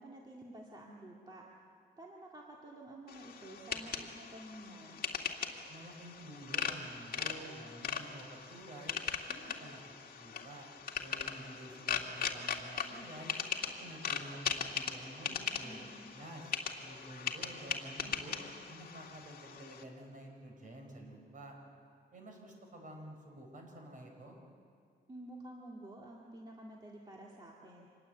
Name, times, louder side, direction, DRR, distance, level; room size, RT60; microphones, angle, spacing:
voice 1, 0.0-1.4 2.0-5.0 15.6-16.1 25.1-27.9, right 1 dB, 25° right, -2 dB, 2.1 m, -50 dB
sound 1, 3.1-19.8, left 7 dB, 55° left, 1.9 m, -40 dB
voice 2, 5.7-9.0 9.2-10.7 11.0-13.4 13.8-15.8 16.1-16.5 16.8-18.4 18.7-21.6 22.1-24.4, right 1 dB, 50° right, 2 dB, 5.1 m, -50 dB
26.0 x 20.5 x 7.9 m, 2.2 s
wide cardioid pair, 155°, 18 cm